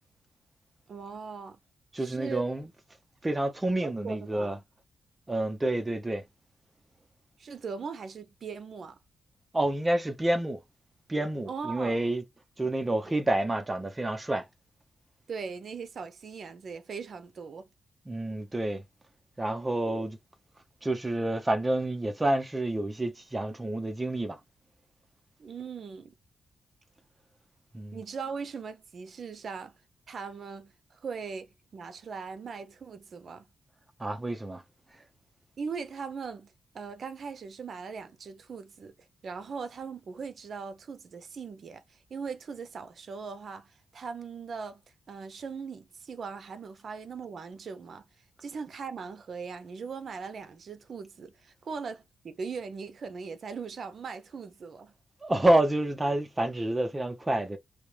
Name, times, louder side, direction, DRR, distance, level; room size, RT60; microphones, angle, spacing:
voice 1, 0.9-1.6 2.0-2.4 3.8-4.5 7.4-9.0 11.5-12.0 15.3-17.7 25.4-26.1 27.9-29.7 30.1-33.5 35.6-38.9 39.2-44.8 45.1-48.0 48.4-54.9, right 5 dB, 50° right, 0.8 m, -40 dB
voice 2, 1.9-2.7 3.2-4.6 5.3-6.2 9.5-10.6 11.1-12.2 12.6-14.5 18.1-18.8 19.4-20.2 20.8-24.4 27.7-28.0 34.0-34.6 55.2-57.6, right 1 dB, 15° right, 0.8 m, -28 dB
5.0 x 2.9 x 3.3 m
wide cardioid pair, 155°, 0 cm